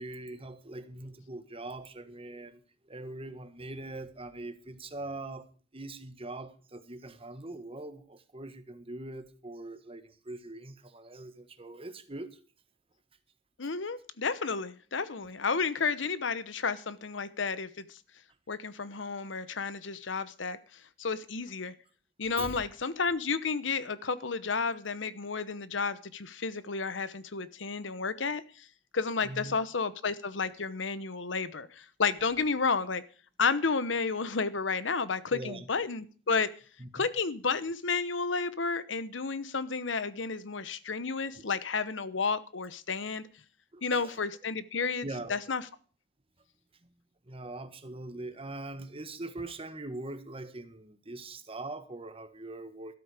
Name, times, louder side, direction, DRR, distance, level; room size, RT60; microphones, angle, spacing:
voice 1, 0.0-5.5 5.7-12.4 13.6-13.7 22.4-22.6 29.2-29.6 35.3-35.7 36.8-37.1 41.3-41.4 43.7-44.2 45.0-45.4 47.3-53.0, right 2 dB, 30° right, 10 dB, 1.5 m, -42 dB
voice 2, 13.6-17.8 18.5-20.6 21.0-21.7 22.2-28.4 28.9-33.0 33.4-36.5 36.9-43.2 43.8-45.6, left 4 dB, 75° left, 16 dB, 1.0 m, -31 dB
13.5 x 13.0 x 5.0 m, 0.40 s
head